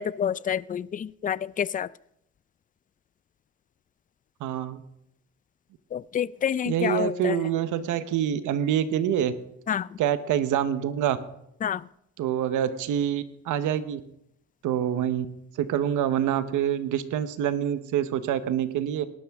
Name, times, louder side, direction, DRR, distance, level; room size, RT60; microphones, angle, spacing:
voice 1, 0.0-1.9 5.9-7.4 9.7-10.0 11.6-11.9, left 8 dB, 30° left, 20 dB, 0.4 m, -28 dB
voice 2, 4.4-4.8 6.7-9.3 10.0-11.2 12.2-14.0 14.6-15.3 15.6-19.1, right 9 dB, 85° right, 12 dB, 1.0 m, -26 dB
18.5 x 11.5 x 3.6 m, 0.77 s
cardioid pair, 90°, 30 cm